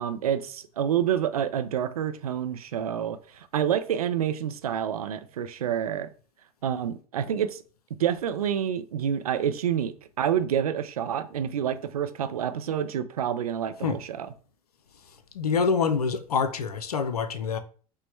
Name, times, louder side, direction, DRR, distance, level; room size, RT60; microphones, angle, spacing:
voice 1, 0.0-6.1 6.6-7.6 8.0-14.3, right 9 dB, 75° right, 0.4 m, -28 dB
voice 2, 15.3-17.6, left 5 dB, 80° left, 0.4 m, -26 dB
5.4 x 2.0 x 3.1 m
figure-of-eight pair, 80°, 19 cm